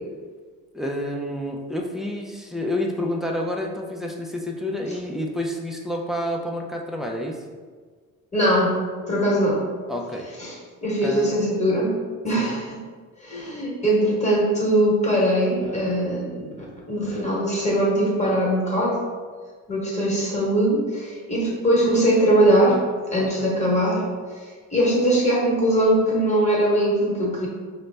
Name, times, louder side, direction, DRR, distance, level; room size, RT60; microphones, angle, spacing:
voice 1, 0.7-7.5 9.9-10.3 11.0-11.3 12.4-12.6 23.2-23.5, left 1 dB, ahead, -1 dB, 0.3 m, -29 dB
voice 2, 8.3-8.8 9.1-9.6 10.4-11.9 12.2-12.8 13.2-19.0 19.7-22.8 23.1-24.0 24.4-27.5, right 1 dB, 20° left, -3 dB, 1.1 m, -21 dB
5.3 x 2.1 x 3.3 m, 1.5 s
cardioid pair, 130°, 33 cm